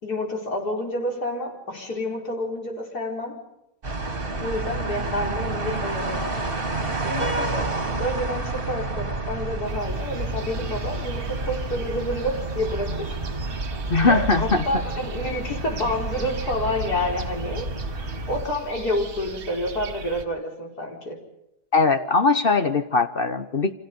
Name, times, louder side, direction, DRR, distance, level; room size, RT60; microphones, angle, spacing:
voice 1, 0.0-3.4 4.4-6.4 7.0-13.2 14.0-17.7 18.3-21.2, left 1 dB, 75° left, 0 dB, 5.0 m, -29 dB
sound 1, 3.8-18.5, right 2 dB, 35° right, 2.6 m, -30 dB
sound 2, 9.7-20.3, right 5 dB, 65° right, 1.8 m, -39 dB
voice 2, 13.9-14.6 21.7-23.7, left 4 dB, 40° left, 9 dB, 1.1 m, -20 dB
29.5 x 25.5 x 5.4 m, 0.85 s
omnidirectional pair, 1.7 m